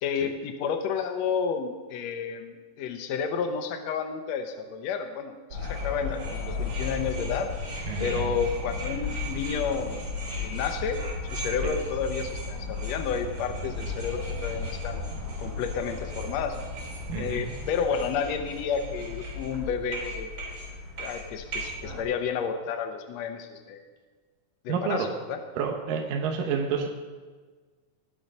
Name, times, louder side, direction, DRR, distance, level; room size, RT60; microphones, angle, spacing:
voice 1, 0.0-7.5 8.0-10.1 10.4-11.0 11.3-15.0 15.4-16.6 17.1-20.3 21.0-23.8 24.6-25.4, left 6 dB, 80° left, 5 dB, 1.5 m, -31 dB
sound 1, 5.5-22.0, left 3 dB, 30° right, 5.0 m, -34 dB
voice 2, 7.9-8.3 11.6-11.7 17.1-17.5 24.7-25.1 25.6-26.9, right 6 dB, 75° right, 1 dB, 2.6 m, -29 dB
20.0 x 7.6 x 5.4 m, 1.4 s
omnidirectional pair, 4.2 m